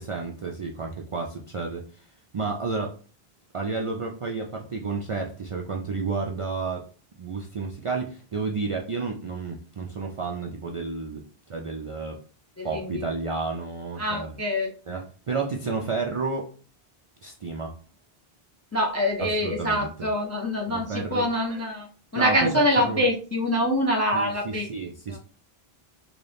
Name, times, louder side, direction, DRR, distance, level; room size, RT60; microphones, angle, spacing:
voice 1, 0.0-2.1 2.3-3.0 3.5-6.8 7.2-12.2 12.6-14.3 14.9-16.5 17.2-17.7 19.2-19.9 20.7-21.3 22.1-22.6 22.9-23.0 24.1-25.2, right 4 dB, 55° right, 0 dB, 0.3 m, -31 dB
voice 2, 12.6-13.1 14.0-14.7 18.7-21.9 22.1-24.7 25.1-25.2, equal, 25° left, 0 dB, 0.3 m, -25 dB
4.0 x 2.3 x 3.3 m, 0.40 s
omnidirectional pair, 1.0 m